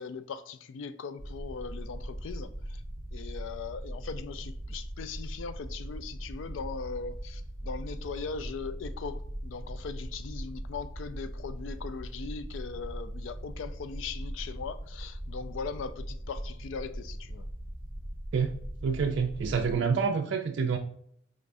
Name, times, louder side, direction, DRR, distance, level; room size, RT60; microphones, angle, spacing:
voice 1, 0.0-2.8 3.1-17.5, left 5 dB, 75° left, 0.3 m, -39 dB
sound 1, 1.2-19.8, equal, 50° left, 1.3 m, -40 dB
voice 2, 18.8-20.8, right 5 dB, 65° right, 0.3 m, -27 dB
5.0 x 3.3 x 2.5 m
head